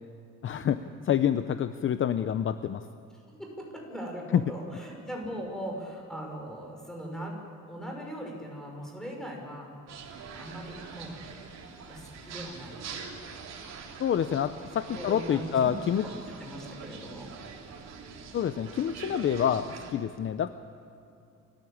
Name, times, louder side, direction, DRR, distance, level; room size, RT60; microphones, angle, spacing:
voice 1, 0.4-0.8 1.0-2.8 4.3-4.4 14.0-16.0 18.3-20.5, left 9 dB, 45° left, 11 dB, 0.7 m, -27 dB
voice 2, 3.4-7.4 7.7-9.7 10.3-11.1 11.9-12.7 14.9-15.8 16.0-17.3, equal, ahead, 0 dB, 5.9 m, -39 dB
sound 1, 9.9-19.9, right 5 dB, 65° right, 3.6 m, -44 dB
28.0 x 14.5 x 8.7 m, 2.7 s
cardioid pair, 135°, 29 cm